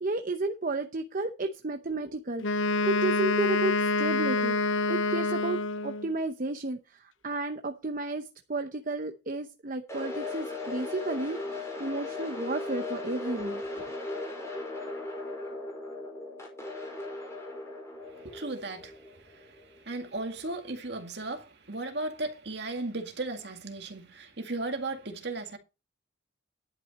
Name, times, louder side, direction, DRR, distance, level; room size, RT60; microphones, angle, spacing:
voice 1, 0.0-2.4 2.8-4.6 4.9-13.9, right 2 dB, 45° right, 0.8 m, -32 dB
Wind instrument woodwind instrument, 2.4-6.1, left 2 dB, 85° left, 0.7 m, -27 dB
sound 1, 9.9-19.9, left 2 dB, 15° left, 5.2 m, -38 dB
voice 2, 18.1-25.6, right 2 dB, 60° right, 2.1 m, -36 dB
11.0 x 8.7 x 4.2 m
head